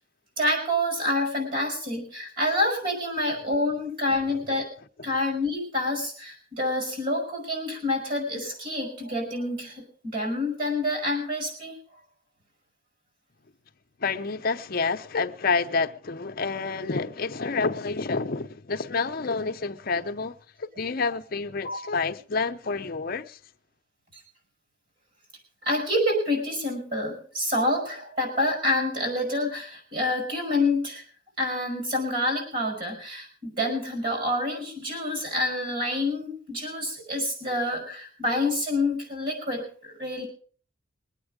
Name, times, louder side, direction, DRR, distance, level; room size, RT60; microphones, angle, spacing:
voice 1, 0.4-4.7 5.0-11.8 21.6-21.8 24.1-24.2 25.6-31.0 31.4-40.3, left 1 dB, 45° right, 5.6 m, -27 dB
voice 2, 14.0-23.4, left 4 dB, 50° left, 0.7 m, -28 dB
22.0 x 8.8 x 5.0 m
head